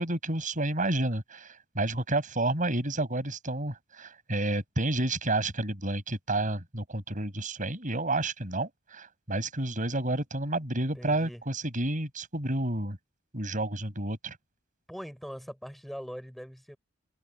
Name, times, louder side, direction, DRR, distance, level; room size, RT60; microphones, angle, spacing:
voice 1, 0.0-13.0 13.3-14.4, right 2 dB, 40° right, 7.5 m, -30 dB
voice 2, 10.7-11.4 14.9-16.8, equal, ahead, 7.1 m, -42 dB
open air
head